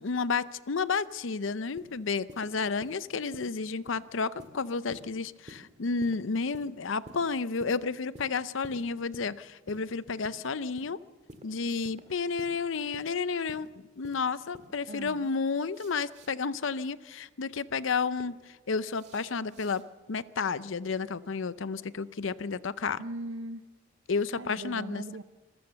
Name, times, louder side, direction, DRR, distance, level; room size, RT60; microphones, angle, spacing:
voice 1, 0.0-11.0 11.4-23.0 24.1-25.0, left 4 dB, 70° left, 16 dB, 0.6 m, -31 dB
sound 1, 1.8-2.0 2.3-2.5 2.8-3.0 3.3-3.5 3.9-4.0 4.4-4.6 4.9-5.1 5.5-5.7 6.0-6.2 6.5-6.7 7.1-7.3 7.6-7.8 8.2-8.3 8.6-8.8 9.1-9.3 9.7-9.9 10.2-10.4 10.8-10.9 11.3-11.5 11.8-12.0 12.4-12.5 12.9-13.1 13.5-13.7 14.0-14.2 14.5-14.7 15.1-15.3 15.6-16.3 17.7-18.2 18.9-19.8, right 1 dB, 35° right, 2.0 m, -49 dB
voice 2, 14.9-15.3 23.0-23.6 24.3-25.2, right 1 dB, 75° right, 8 dB, 0.8 m, -39 dB
26.5 x 15.0 x 6.9 m, 1.3 s
head